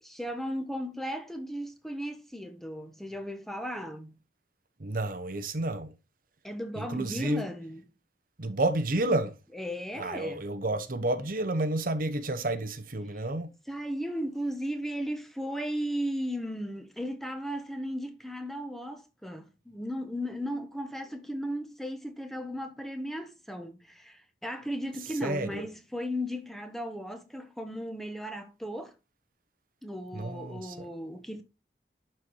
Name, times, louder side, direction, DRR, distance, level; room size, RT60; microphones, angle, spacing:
voice 1, 0.0-4.2 6.4-7.8 9.5-10.4 13.1-13.2 13.7-28.9 29.8-31.4, equal, ahead, 1.2 m, -36 dB
voice 2, 4.8-5.9 6.8-7.5 8.4-9.3 10.0-13.5 25.2-25.6 30.1-30.9, right 2 dB, 50° right, 1.0 m, -30 dB
11.5 x 4.6 x 4.7 m
head